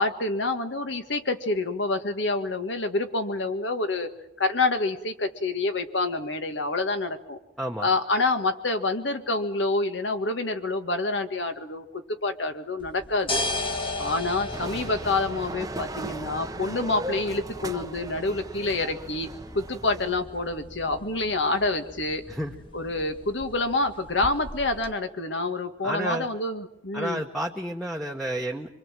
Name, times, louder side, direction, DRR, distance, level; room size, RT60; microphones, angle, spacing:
voice 1, 0.0-7.4 7.8-13.5 14.0-19.3 19.5-22.2 22.7-27.3, left 2 dB, 75° left, 7 dB, 1.8 m, -27 dB
voice 2, 7.6-7.9 22.3-22.5 25.8-26.3 26.9-28.7, right 1 dB, ahead, 2 dB, 1.1 m, -31 dB
sound 1, 12.8-24.9, left 2 dB, 25° left, 1.6 m, -37 dB
sound 2, 14.5-20.2, right 2 dB, 20° right, 0.8 m, -38 dB
25.0 x 23.5 x 7.6 m, 0.87 s
head